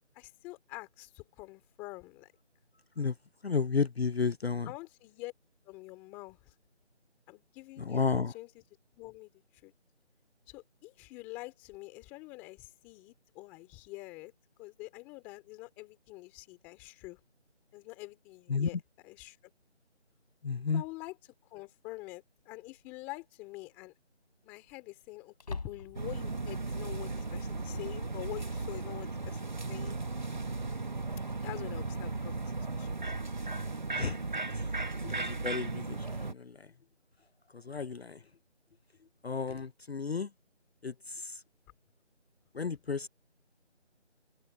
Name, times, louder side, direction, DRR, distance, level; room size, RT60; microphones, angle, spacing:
voice 1, 0.1-2.3 4.6-5.3 5.6-6.5 7.3-8.6 8.9-9.7 10.5-14.3 14.6-17.2 17.7-19.4 20.7-21.2 21.5-23.9 24.4-30.0 31.4-32.9, left 22 dB, 5° left, 3.2 m, -46 dB
voice 2, 3.4-4.7 7.9-8.3 18.5-18.7 20.4-20.8 34.0-34.2 35.0-36.3 37.7-38.2 39.2-40.3 40.8-40.9 41.2-41.3 42.6-43.1, left 5 dB, 60° left, 0.7 m, -32 dB
sound 1, 20.8-20.9 22.7-23.1 23.4-23.5 25.3-26.2, left 4 dB, 35° left, 3.3 m, -42 dB
sound 2, 25.9-36.3, right 3 dB, 40° right, 1.3 m, -36 dB
figure-of-eight pair, 170°, 35 cm